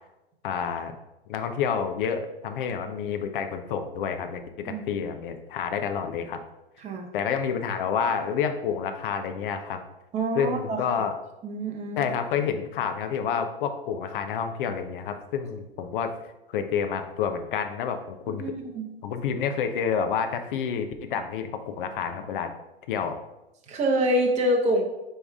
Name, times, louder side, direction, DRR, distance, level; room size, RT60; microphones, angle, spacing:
voice 1, 0.4-0.9 1.3-6.4 7.1-9.8 10.3-11.2 12.0-16.1 16.5-18.4 19.0-22.5 22.9-23.2, left 7 dB, 55° left, 7 dB, 0.9 m, -29 dB
voice 2, 10.1-11.0 11.4-12.1 18.3-18.9 23.7-24.8, right 1 dB, 20° right, 1 dB, 1.1 m, -26 dB
9.6 x 3.4 x 3.6 m, 0.97 s
hypercardioid pair, 120°, 31 cm